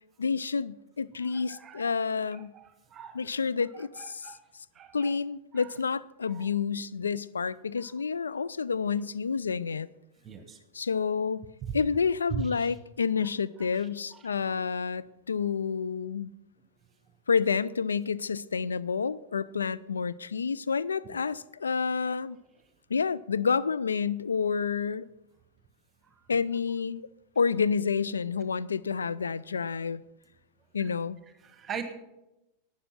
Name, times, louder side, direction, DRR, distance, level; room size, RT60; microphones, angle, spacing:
voice 1, 0.2-2.5 3.1-4.3 4.9-9.9 10.7-11.5 11.7-16.3 17.3-22.4 22.9-25.1 26.3-27.0 27.4-30.0 30.7-31.2, left 5 dB, 75° left, 0.3 m, -29 dB
voice 2, 1.2-1.9 2.3-3.3 3.7-4.4 4.7-5.1 5.5-5.7 6.3-6.5 8.3-8.4 10.2-10.6 11.6-11.7 12.3-12.7 13.7-14.3 26.0-26.2 31.4-31.8, right 8 dB, 25° right, 1.1 m, -40 dB
12.0 x 8.7 x 5.8 m
figure-of-eight pair, 90°, 0 cm